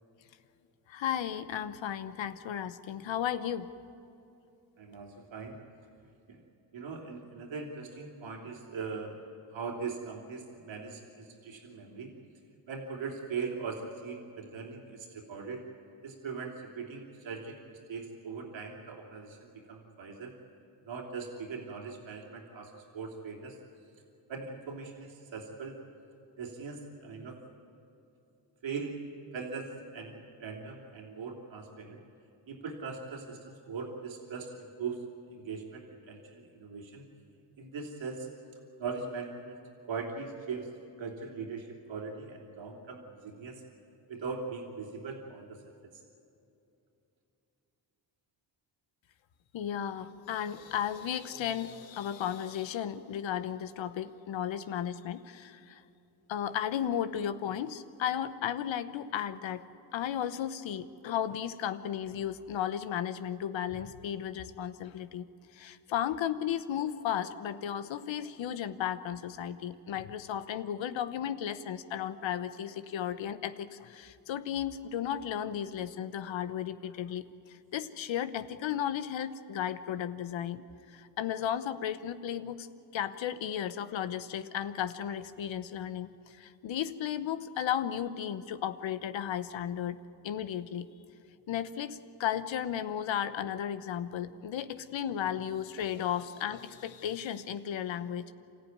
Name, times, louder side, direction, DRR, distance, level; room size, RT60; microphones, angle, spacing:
voice 1, 0.9-3.7 49.5-55.8 56.3-59.7 59.9-65.3 65.5-77.2 77.5-82.7 82.9-90.9 91.5-98.3, left 9 dB, 80° left, 12 dB, 1.1 m, -34 dB
voice 2, 4.8-5.6 6.3-6.4 6.7-9.2 9.5-12.1 12.7-15.6 16.0-20.3 20.8-23.6 24.3-25.8 26.4-27.4 28.6-29.0 29.3-32.0 32.5-37.0 37.6-38.3 38.8-43.6 44.1-46.0, right 5 dB, 80° right, 0 dB, 3.2 m, -40 dB
27.5 x 14.5 x 9.5 m, 2.8 s
supercardioid pair, 55°, 45 cm